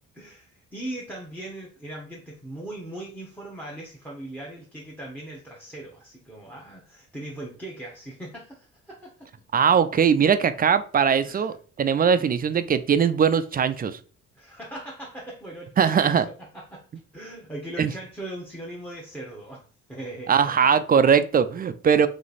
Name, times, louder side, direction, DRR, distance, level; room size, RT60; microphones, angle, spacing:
voice 1, 0.1-9.3 11.2-11.4 12.0-12.2 14.4-16.8 17.1-19.6 19.9-20.4, right 1 dB, 5° left, -3 dB, 1.0 m, -39 dB
voice 2, 9.5-14.0 15.8-16.3 17.8-17.9 20.3-22.1, right 7 dB, 30° right, 12 dB, 0.4 m, -20 dB
3.3 x 3.1 x 4.0 m, 0.40 s
cardioid pair, 90°, 30 cm